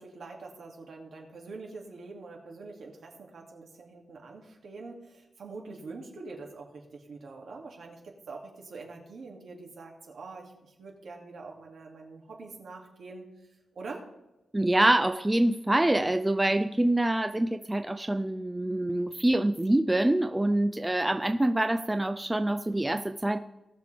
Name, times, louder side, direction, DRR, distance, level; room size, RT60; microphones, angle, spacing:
voice 1, 0.0-13.3 13.7-14.0, right 3 dB, 60° right, 0 dB, 2.4 m, -44 dB
voice 2, 14.5-23.4, right 1 dB, 10° right, 8 dB, 0.3 m, -25 dB
19.0 x 6.7 x 3.4 m, 0.98 s
wide cardioid pair, 180°, 0 cm